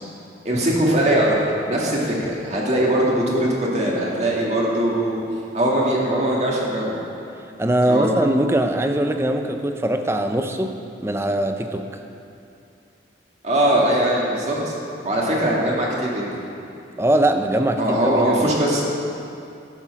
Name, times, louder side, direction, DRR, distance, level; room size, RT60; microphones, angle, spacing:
voice 1, 0.5-1.4 1.7-3.5 3.7-5.2 5.5-7.0 7.9-8.2 13.4-14.7 15.0-16.3 17.8-18.9, right 1 dB, 40° right, -4 dB, 1.9 m, -21 dB
voice 2, 7.6-11.9 17.0-18.5, right 1 dB, 15° right, 6 dB, 0.5 m, -21 dB
11.5 x 7.3 x 5.8 m, 2.6 s
head